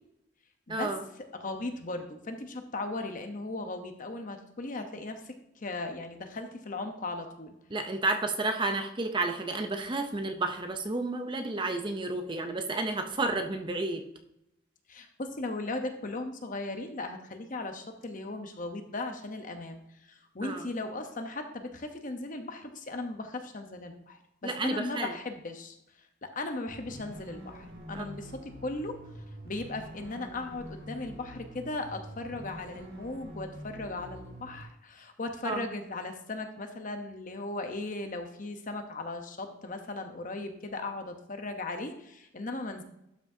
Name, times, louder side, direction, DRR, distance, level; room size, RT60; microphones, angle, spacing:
voice 1, 0.7-1.0 7.7-14.1 20.4-20.7 24.4-25.2 27.9-28.0 35.4-35.6, right 2 dB, 25° right, 5 dB, 0.6 m, -31 dB
voice 2, 1.3-7.5 14.9-25.8 26.2-29.0 29.4-42.8, left 2 dB, 40° left, 6 dB, 0.8 m, -37 dB
sound 1, 26.7-34.6, right 1 dB, 50° right, 1.6 m, -46 dB
12.0 x 5.9 x 2.7 m, 0.82 s
head